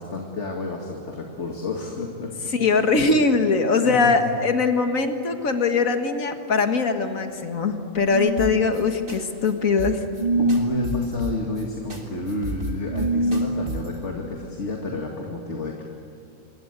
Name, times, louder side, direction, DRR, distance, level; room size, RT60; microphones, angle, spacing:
voice 1, 0.0-2.3 2.6-2.9 3.8-4.1 10.4-15.8, left 2 dB, 60° left, 0 dB, 2.5 m, -30 dB
voice 2, 2.5-10.0, left 4 dB, 75° left, 6 dB, 2.1 m, -21 dB
sound 1, 7.9-8.6 10.1-10.7 12.8-13.4, right 2 dB, 30° right, 7.1 m, -24 dB
sound 2, 8.4-8.8 9.1-9.2 9.4-9.5 9.8-10.2 10.5-11.6 11.9-12.0 12.3-14.0, right 2 dB, 75° right, 3.7 m, -33 dB
26.0 x 22.5 x 8.2 m, 2.5 s
omnidirectional pair, 1.4 m